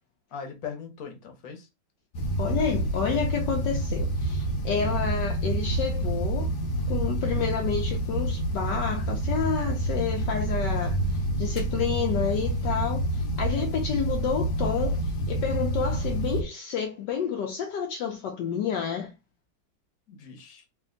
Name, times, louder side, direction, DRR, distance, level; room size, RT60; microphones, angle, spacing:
voice 1, 0.3-1.7 4.8-4.9 7.3-7.7 20.1-20.6, left 6 dB, 55° left, 1.3 m, -40 dB
sound 1, 2.1-16.4, right 1 dB, 85° left, 1.6 m, -28 dB
voice 2, 2.4-6.5 6.9-11.0 11.4-13.0 13.4-19.1, left 7 dB, 70° left, 1.3 m, -29 dB
3.4 x 2.7 x 3.8 m
omnidirectional pair, 2.1 m